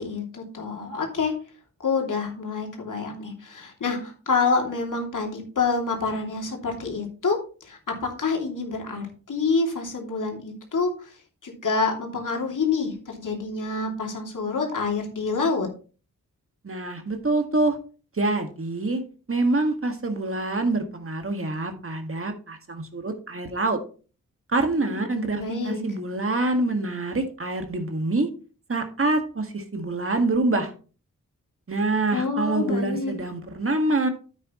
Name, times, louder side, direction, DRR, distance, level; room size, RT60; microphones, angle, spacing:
voice 1, 0.0-1.3 1.8-11.1 11.4-15.7 24.9-25.8 32.1-33.1, left 4 dB, 65° left, 1 dB, 2.9 m, -27 dB
voice 2, 16.6-17.8 18.1-19.0 19.3-23.8 24.5-28.3 28.7-30.7 31.7-34.1, right 2 dB, 40° right, 5 dB, 1.9 m, -26 dB
9.6 x 8.3 x 3.1 m, 0.38 s
cardioid pair, 50°, 33 cm